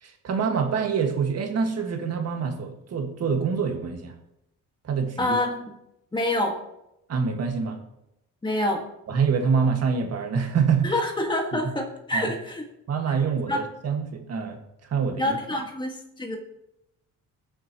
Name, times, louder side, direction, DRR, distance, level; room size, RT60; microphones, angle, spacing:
voice 1, 0.0-4.1 4.8-5.4 7.1-7.8 9.1-10.9 12.1-12.3 12.9-14.6 14.9-15.4, right 6 dB, 50° right, 4 dB, 1.8 m, -25 dB
voice 2, 5.2-5.7 6.1-6.5 8.4-8.8 10.8-12.7 13.5-13.6 15.2-16.4, left 1 dB, 15° left, 2 dB, 1.8 m, -26 dB
21.0 x 7.7 x 3.0 m, 0.85 s
cardioid pair, 155°, 32 cm